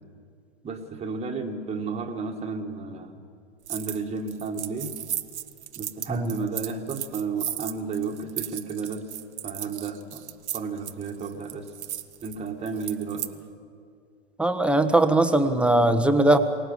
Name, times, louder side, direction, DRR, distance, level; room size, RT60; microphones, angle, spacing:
voice 1, 0.6-3.2 3.7-5.0 5.8-9.1 9.4-10.2 10.5-11.7 12.2-13.3, right 4 dB, 20° right, 3 dB, 1.8 m, -32 dB
sound 1, 3.6-4.0 4.3-13.3, right 11 dB, 75° right, 1.0 m, -35 dB
voice 2, 14.4-16.4, right 1 dB, 5° right, 8 dB, 1.2 m, -20 dB
24.0 x 18.0 x 7.4 m, 2.3 s
hypercardioid pair, 105°, 34 cm